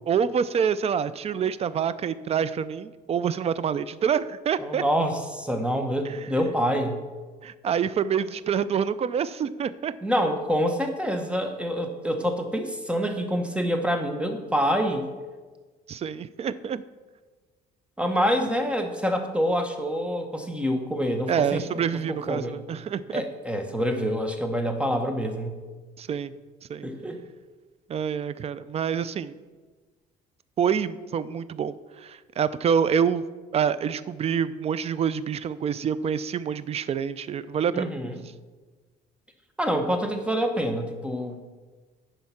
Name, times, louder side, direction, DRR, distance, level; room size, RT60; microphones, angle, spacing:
voice 1, 0.1-4.8 6.1-6.2 7.4-9.9 15.9-16.8 21.3-23.2 26.0-26.3 26.7-26.9 27.9-29.4 30.6-33.2 33.5-37.9, right 7 dB, 40° right, 16 dB, 0.4 m, -27 dB
voice 2, 4.6-7.0 10.0-15.1 18.0-21.8 22.1-22.6 23.1-25.6 26.8-27.2 37.7-38.2 39.6-41.5, equal, 5° right, 5 dB, 1.1 m, -26 dB
10.5 x 4.6 x 5.8 m, 1.3 s
cardioid pair, 110°, 17 cm